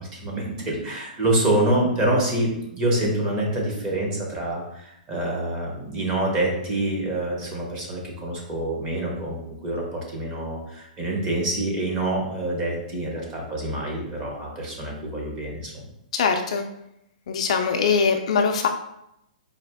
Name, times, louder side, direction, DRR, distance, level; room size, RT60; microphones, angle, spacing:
voice 1, 0.0-15.7, right 1 dB, 15° right, -2 dB, 0.8 m, -26 dB
voice 2, 16.1-16.6 17.3-18.7, left 5 dB, 45° left, 4 dB, 0.4 m, -22 dB
4.1 x 2.8 x 3.4 m, 0.80 s
hypercardioid pair, 175°, 5 cm